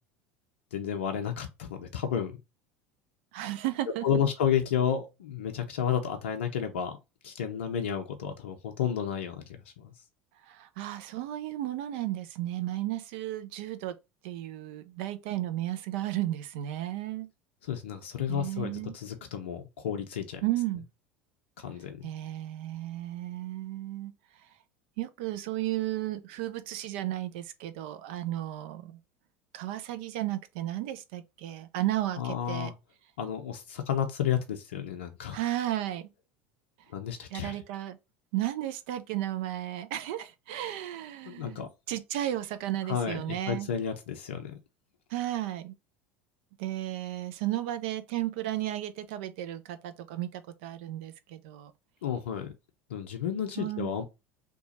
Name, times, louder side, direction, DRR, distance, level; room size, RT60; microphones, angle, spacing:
voice 1, 0.7-2.4 4.0-7.0 7.2-9.9 17.6-20.4 21.6-22.1 32.2-32.7 33.2-35.4 36.9-37.6 41.2-41.7 42.9-44.5 52.0-52.5 52.9-54.0, left 8 dB, 75° left, 0.5 m, -31 dB
voice 2, 3.3-4.0 10.5-14.0 14.2-17.3 18.3-18.9 20.4-20.9 22.0-24.1 25.0-29.0 29.5-32.7 35.3-36.1 37.3-38.0 38.3-41.6 41.9-43.7 45.1-45.7 46.6-51.7 53.6-53.9, right 14 dB, 65° right, 0.5 m, -34 dB
2.9 x 2.3 x 4.1 m
hypercardioid pair, 75°, 6 cm